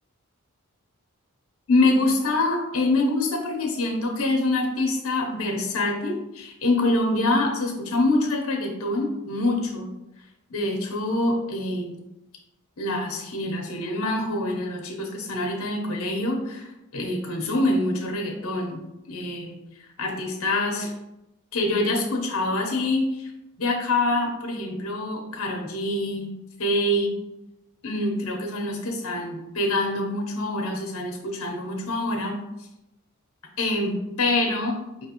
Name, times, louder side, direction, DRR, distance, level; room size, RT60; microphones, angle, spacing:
voice 1, 1.7-9.9 10.5-12.0 12.8-19.6 20.0-20.9 21.5-23.3 23.6-26.3 26.6-27.1 27.8-32.4 33.6-35.1, left 2 dB, 70° left, 1 dB, 0.9 m, -25 dB
4.8 x 3.2 x 2.9 m, 0.91 s
head